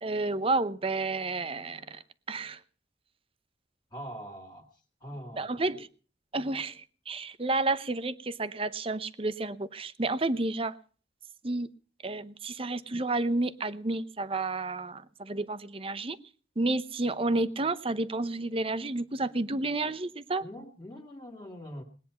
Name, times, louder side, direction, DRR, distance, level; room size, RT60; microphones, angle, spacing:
voice 1, 0.0-2.0 2.3-2.6 5.4-5.9 6.3-10.7 11.4-11.7 12.0-16.2 16.6-20.4, right 2 dB, 30° right, 14 dB, 0.8 m, -31 dB
voice 2, 3.9-4.7 5.0-5.8 20.4-21.8, equal, 20° left, 0 dB, 2.2 m, -43 dB
20.5 x 9.9 x 5.7 m, 0.41 s
head